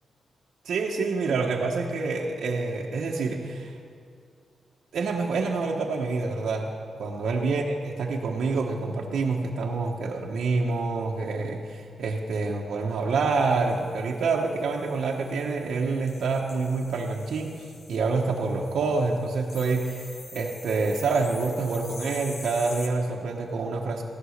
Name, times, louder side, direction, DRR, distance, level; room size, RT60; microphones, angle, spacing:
voice 1, 0.6-3.8 4.9-6.7 7.0-24.0, right 4 dB, 75° right, -1 dB, 1.1 m, -27 dB
sound 1, 13.3-22.9, left 3 dB, 50° left, 1.6 m, -46 dB
15.0 x 11.5 x 6.6 m, 2.3 s
wide cardioid pair, 125°, 0 cm